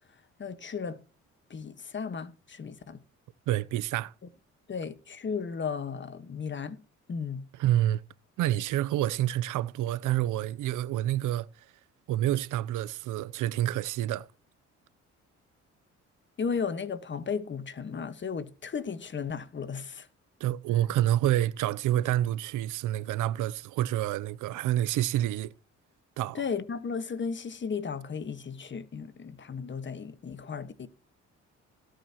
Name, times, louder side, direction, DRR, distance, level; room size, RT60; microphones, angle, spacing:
voice 1, 0.4-1.0 1.5-3.0 4.7-6.8 7.1-7.4 16.4-20.1 26.3-30.9, left 6 dB, 40° left, 1.4 m, -35 dB
voice 2, 3.5-4.1 7.5-8.0 8.4-11.5 12.1-14.3 20.4-25.5 26.2-26.4, right 13 dB, 85° right, 0.7 m, -28 dB
18.0 x 9.1 x 3.0 m
cardioid pair, 90°, 30 cm